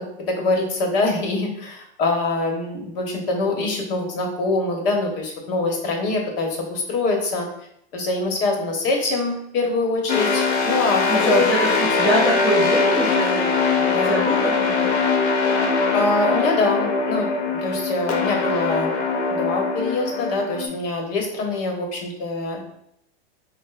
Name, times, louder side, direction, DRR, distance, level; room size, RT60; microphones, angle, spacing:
voice 1, 0.3-7.5 7.9-11.5 13.9-14.1 15.9-18.9 19.3-22.6, left 2 dB, 55° left, 1 dB, 1.1 m, -24 dB
sound 1, 10.1-20.7, left 4 dB, 75° left, 0.9 m, -22 dB
voice 2, 11.1-14.8, right 1 dB, ahead, -6 dB, 0.3 m, -24 dB
6.1 x 2.2 x 2.4 m, 0.73 s
supercardioid pair, 140°, 33 cm